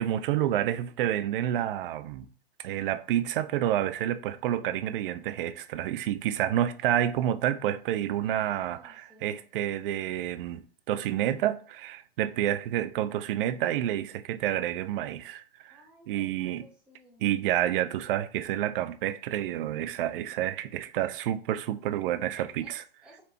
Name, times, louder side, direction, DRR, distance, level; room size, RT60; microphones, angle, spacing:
voice 1, 0.0-2.3 2.6-15.8 16.1-16.7 17.2-22.8, right 12 dB, 60° right, 0.5 m, -29 dB
voice 2, 8.2-9.8 15.7-17.3 22.6-23.2, equal, 5° right, 1.6 m, -57 dB
4.3 x 3.2 x 2.8 m
hypercardioid pair, 110°, 31 cm